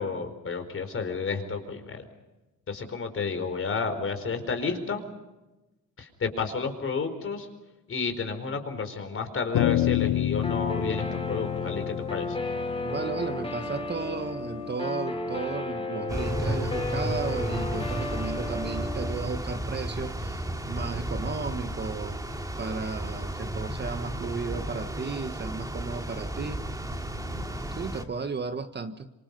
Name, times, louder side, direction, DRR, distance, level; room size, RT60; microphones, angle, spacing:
voice 1, 0.0-2.0 2.7-5.0 6.0-7.5 7.9-12.4, left 5 dB, 40° left, 7 dB, 4.7 m, -31 dB
sound 1, 9.5-14.1, left 12 dB, 75° left, 1.6 m, -29 dB
Guitar, 10.4-19.1, left 2 dB, 15° left, 3.7 m, -33 dB
voice 2, 12.8-26.6 27.7-29.1, right 4 dB, 30° right, 9 dB, 1.4 m, -34 dB
sound 2, 16.1-28.0, right 1 dB, 10° right, 2.5 m, -33 dB
26.5 x 25.0 x 5.5 m, 1.1 s
cardioid pair, 105°, 32 cm